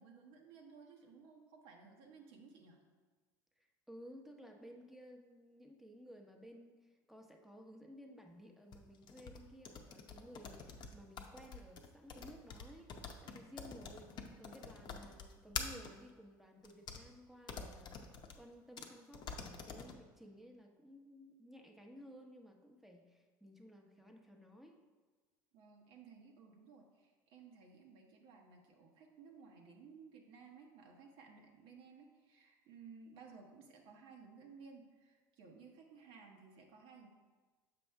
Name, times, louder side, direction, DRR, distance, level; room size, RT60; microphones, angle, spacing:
voice 1, 0.0-2.8 25.5-37.1, right 5 dB, 65° right, 1 dB, 1.1 m, -58 dB
voice 2, 3.9-24.8, equal, ahead, 2 dB, 0.9 m, -56 dB
sound 1, 8.7-15.9 16.6-17.0 17.5-18.4 18.8-18.9 19.1-19.9, left 5 dB, 45° left, 0.7 m, -46 dB
7.0 x 5.2 x 3.4 m, 1.4 s
hypercardioid pair, 85°, 10 cm